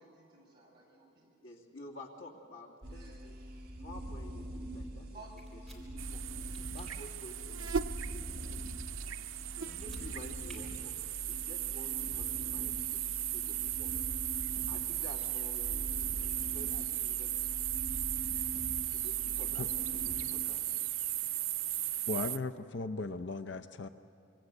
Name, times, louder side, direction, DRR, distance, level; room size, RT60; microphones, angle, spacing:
voice 1, 0.0-1.4 2.9-3.3 5.1-5.4, right 3 dB, 25° right, -4 dB, 7.1 m, -56 dB
voice 2, 1.4-3.3 3.8-6.2 6.7-7.8 8.1-8.7 9.6-11.0 11.3-13.9 14.7-17.5 18.9-20.7, left 1 dB, 85° left, 0 dB, 2.8 m, -51 dB
sound 1, 2.8-20.3, right 1 dB, 50° right, 1.8 m, -43 dB
sound 2, 5.4-5.8 6.5-7.0 9.7-10.1 10.5-10.6, right 1 dB, ahead, 3.9 m, -55 dB
sound 3, 6.0-22.4, right 13 dB, 90° right, 0.7 m, -36 dB
voice 3, 22.1-23.9, left 3 dB, 60° left, 9 dB, 0.6 m, -37 dB
25.5 x 23.5 x 7.9 m, 2.6 s
head